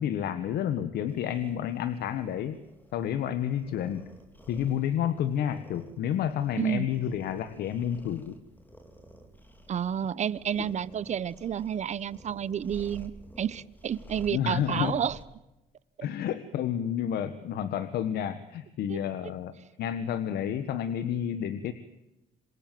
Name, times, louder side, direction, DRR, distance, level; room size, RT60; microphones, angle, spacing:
voice 1, 0.0-2.6 2.9-4.0 4.5-8.3 10.6-10.7 14.3-15.0 16.0-21.7, left 9 dB, 70° left, 12 dB, 1.6 m, -30 dB
sound 1, 1.1-15.3, right 1 dB, 10° left, 3.7 m, -52 dB
voice 2, 9.7-13.1 13.4-15.2 18.9-19.0, right 9 dB, 45° right, 18 dB, 1.1 m, -30 dB
27.5 x 23.0 x 7.8 m, 0.98 s
cardioid pair, 110°, 17 cm